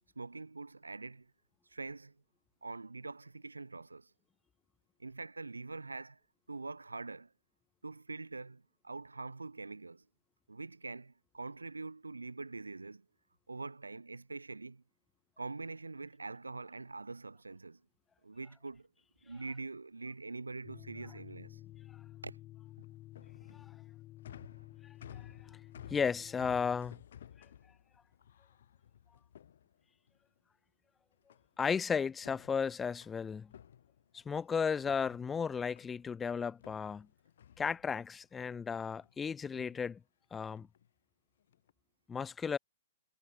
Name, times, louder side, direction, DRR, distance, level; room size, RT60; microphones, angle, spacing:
voice 1, 0.2-1.3 1.7-2.2 2.6-4.1 5.0-6.2 6.5-7.3 7.8-10.1 10.5-13.1 13.5-14.8 15.4-17.8 18.2-18.9 19.2-21.6 22.2-22.4, right 3 dB, 85° right, 3.8 m, -44 dB
sound 1, 20.6-26.8, left 16 dB, 30° left, 3.5 m, -53 dB
sound 2, 22.6-30.2 31.3-31.8 32.1-34.5 34.8-36.1 36.6-38.3 38.7-39.2 39.4-39.8 40.5-40.9 41.4-41.7, left 9 dB, 60° left, 7.0 m, -56 dB
voice 2, 25.9-27.0 31.6-33.5 34.1-37.1 37.6-40.0 40.3-40.7 42.1-42.6, left 6 dB, 15° left, 1.0 m, -34 dB
figure-of-eight pair, 110°, 0 cm